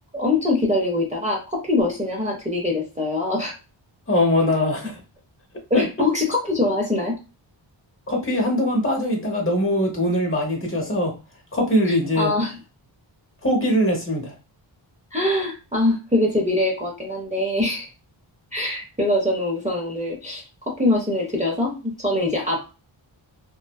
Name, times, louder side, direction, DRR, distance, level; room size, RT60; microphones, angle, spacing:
voice 1, 0.1-3.5 5.7-7.1 11.9-12.6 15.1-17.9 18.5-22.7, left 2 dB, 15° right, -2 dB, 0.6 m, -23 dB
voice 2, 4.1-5.0 5.7-5.8 8.1-11.1 11.5-12.3 13.4-14.3, left 1 dB, 25° left, 1 dB, 0.9 m, -21 dB
2.6 x 2.1 x 2.3 m, 0.31 s
wide cardioid pair, 100°, 48 cm